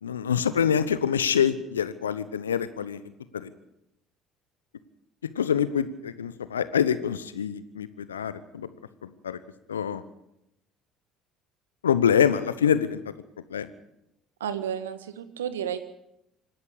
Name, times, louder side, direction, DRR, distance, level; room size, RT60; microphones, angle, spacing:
voice 1, 0.0-3.0 3.3-3.5 5.4-8.7 9.0-9.4 9.7-10.0 11.8-13.0 13.5-13.7, left 8 dB, 80° left, 14 dB, 0.9 m, -25 dB
voice 2, 14.4-15.8, right 9 dB, 80° right, 12 dB, 1.5 m, -32 dB
26.0 x 11.5 x 8.7 m, 0.85 s
figure-of-eight pair, 55°, 0 cm